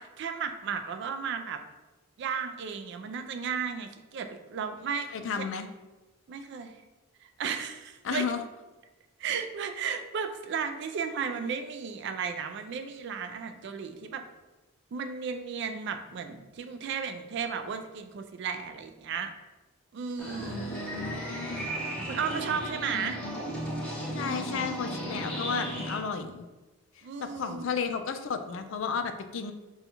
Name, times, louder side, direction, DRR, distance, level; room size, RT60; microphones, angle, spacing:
voice 1, 0.0-1.6 2.2-5.1 5.4-5.5 6.3-6.8 7.2-8.3 9.2-14.2 14.9-19.3 19.9-20.6 22.1-23.2 27.0-27.6, right 6 dB, 55° right, 8 dB, 0.3 m, -34 dB
voice 2, 5.1-5.7 8.0-8.4 20.5-21.9 22.9-23.4 24.1-26.5 27.2-29.5, left 5 dB, 60° left, 8 dB, 0.3 m, -33 dB
sound 1, 20.2-26.0, right 1 dB, 5° left, 0.7 m, -35 dB
5.2 x 2.3 x 2.9 m, 1.1 s
head